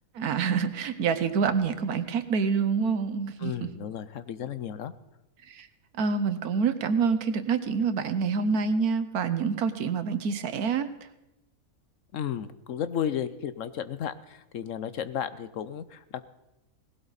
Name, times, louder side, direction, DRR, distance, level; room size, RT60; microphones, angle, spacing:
voice 1, 0.1-3.7 5.5-5.7 6.0-10.9, right 5 dB, 80° right, 11 dB, 1.5 m, -27 dB
voice 2, 3.4-4.9 12.1-16.2, left 9 dB, 65° left, 13 dB, 1.0 m, -33 dB
18.5 x 16.5 x 4.1 m, 0.93 s
omnidirectional pair, 1.6 m